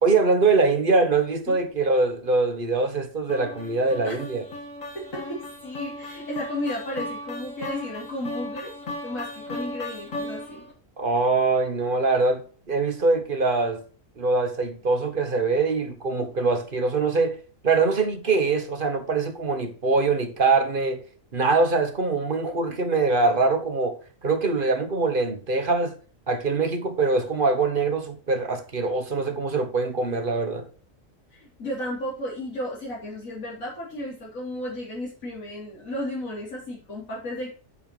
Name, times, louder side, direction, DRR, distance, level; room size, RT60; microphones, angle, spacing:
voice 1, 0.0-4.4 11.0-13.8 14.2-17.4 17.6-21.0 21.3-25.9 26.3-30.7, right 3 dB, 40° right, 1.4 m, -23 dB
sound 1, 3.3-10.7, left 1 dB, 70° left, 2.4 m, -36 dB
voice 2, 4.9-8.7 9.0-10.6 31.3-37.6, left 1 dB, 90° left, 4.0 m, -34 dB
8.5 x 7.0 x 4.5 m
omnidirectional pair, 1.4 m